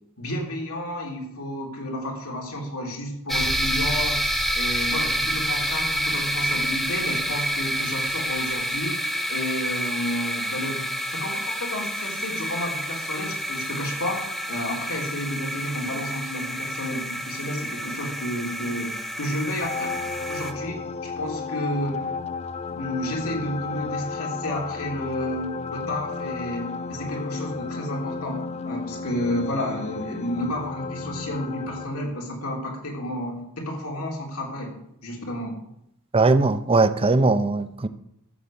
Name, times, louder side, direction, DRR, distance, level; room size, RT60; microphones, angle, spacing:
voice 1, 0.2-4.2 4.5-8.9 9.3-14.2 14.5-18.9 19.2-20.0 20.3-22.1 22.7-34.8 35.0-35.5, left 1 dB, 75° left, 0 dB, 3.2 m, -31 dB
sound 1, 3.3-20.5, equal, ahead, 0.8 m, -28 dB
sound 2, 19.6-31.9, left 4 dB, 30° left, 0.4 m, -33 dB
voice 2, 36.1-37.9, right 3 dB, 25° right, 12 dB, 0.6 m, -19 dB
13.5 x 6.3 x 7.1 m, 0.79 s
head